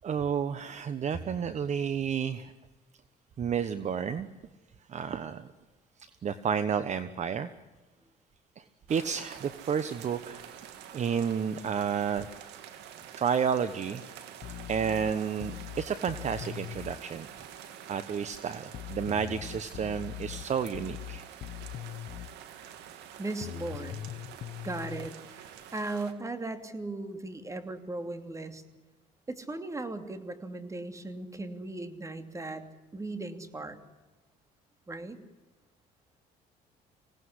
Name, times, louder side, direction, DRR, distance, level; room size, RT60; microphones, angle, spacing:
voice 1, 0.0-2.5 3.4-4.3 4.9-5.5 6.2-7.5 8.6-10.4 10.9-12.3 13.2-14.0 14.7-17.3 17.9-21.2, right 7 dB, 45° right, 12 dB, 1.2 m, -31 dB
sound 1, 8.9-26.1, right 9 dB, 90° right, 2.6 m, -47 dB
sound 2, 14.4-17.0 18.7-22.4 23.4-25.1, left 12 dB, 60° left, 1.0 m, -41 dB
voice 2, 23.2-24.1 24.6-28.6 29.3-32.6 32.9-33.8 34.9-35.2, right 2 dB, 20° right, 8 dB, 2.8 m, -37 dB
25.5 x 18.0 x 9.8 m, 1.2 s
cardioid pair, 110°, 17 cm